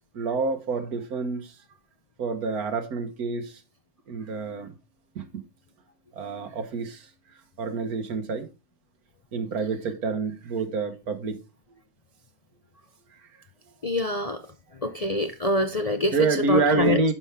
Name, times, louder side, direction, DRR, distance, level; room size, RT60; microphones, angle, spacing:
voice 1, 0.1-1.5 2.2-3.6 4.1-4.7 5.2-5.3 6.2-7.1 7.6-8.5 9.3-11.4 16.1-17.1, right 4 dB, 75° right, 1.8 m, -27 dB
voice 2, 13.8-14.4 14.8-16.2 16.5-17.0, left 1 dB, 50° left, 0.4 m, -25 dB
10.5 x 5.7 x 3.5 m
omnidirectional pair, 1.6 m